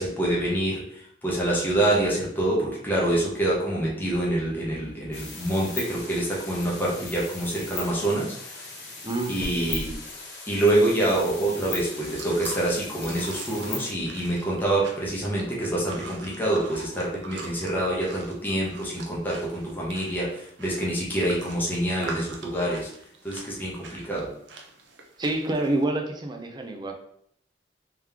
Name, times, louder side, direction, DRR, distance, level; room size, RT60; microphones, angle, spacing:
voice 1, 0.0-8.6 9.3-10.0 10.5-22.9 23.2-24.3, right 1 dB, 10° left, -5 dB, 1.0 m, -26 dB
sound 1, 5.1-13.9, left 3 dB, 70° left, 1.1 m, -38 dB
voice 2, 9.0-9.4 25.2-26.9, right 2 dB, 25° right, 3 dB, 0.5 m, -27 dB
sound 2, 11.8-25.8, right 3 dB, 80° right, 0.7 m, -44 dB
3.6 x 3.1 x 3.5 m, 0.68 s
head